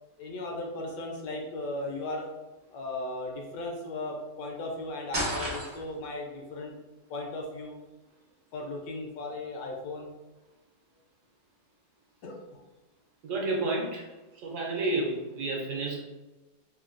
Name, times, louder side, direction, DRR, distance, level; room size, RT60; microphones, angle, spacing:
voice 1, 0.2-2.3 2.7-6.7 7.1-7.7 8.5-10.1 12.2-12.6, left 2 dB, 75° left, 0 dB, 1.2 m, -36 dB
sound 1, 5.1-6.1, right 1 dB, 45° right, 0.3 m, -32 dB
voice 2, 13.2-14.1 14.3-16.0, right 2 dB, 70° right, -1 dB, 1.1 m, -30 dB
3.2 x 2.2 x 2.4 m, 1.1 s
omnidirectional pair, 1.9 m